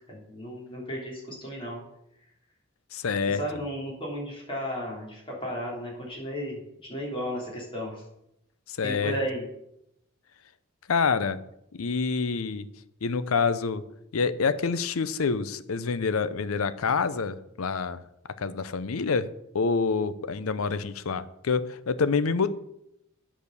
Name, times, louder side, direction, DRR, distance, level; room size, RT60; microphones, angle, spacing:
voice 1, 0.1-1.8 3.3-8.0 8.8-9.4, equal, 25° left, -4 dB, 3.6 m, -34 dB
voice 2, 2.9-3.4 8.7-9.2 10.9-11.4 11.7-12.7 13.0-13.8 14.1-18.0 18.4-22.5, left 5 dB, 80° left, 14 dB, 0.6 m, -27 dB
9.2 x 5.0 x 6.7 m, 0.81 s
head